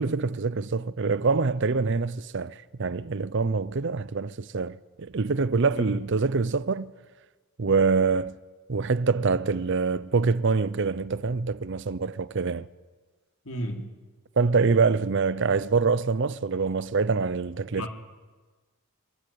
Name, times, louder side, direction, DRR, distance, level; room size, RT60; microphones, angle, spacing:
voice 1, 0.0-6.9 7.6-8.4 8.7-12.7 14.4-17.9, right 4 dB, 55° right, 0.6 m, -25 dB
voice 2, 13.4-13.9 17.7-17.9, equal, 65° left, 3.5 m, -33 dB
25.0 x 14.5 x 9.3 m
head